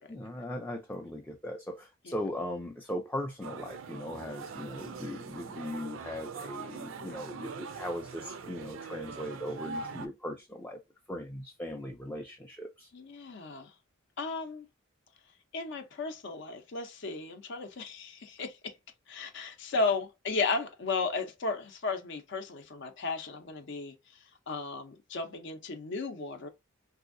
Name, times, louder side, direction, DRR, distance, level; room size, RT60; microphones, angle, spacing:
voice 1, 0.1-10.8 11.1-12.9, left 1 dB, 10° left, 0.4 m, -39 dB
sound 1, 3.4-10.1, right 5 dB, 65° right, 0.4 m, -42 dB
voice 2, 12.9-13.7 14.2-14.7 15.5-18.7 19.1-23.9 24.5-26.5, left 3 dB, 60° left, 0.6 m, -34 dB
3.4 x 2.7 x 2.5 m
head